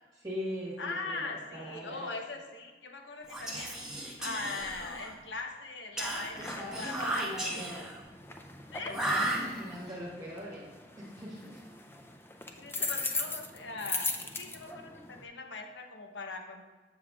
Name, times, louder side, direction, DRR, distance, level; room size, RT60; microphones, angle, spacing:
voice 1, 0.1-2.1 6.4-7.8 9.0-11.6, equal, 25° right, -5 dB, 1.4 m, -41 dB
voice 2, 0.8-3.8 4.2-7.9 8.7-8.9 12.6-16.6, left 3 dB, 90° left, 3 dB, 0.8 m, -41 dB
Whispering, 3.2-5.2 6.0-8.0 8.9-9.9, right 1 dB, 5° right, 0.9 m, -35 dB
sound 1, 6.3-15.3, left 3 dB, 15° left, 0.4 m, -40 dB
7.3 x 6.8 x 2.4 m, 1.3 s
head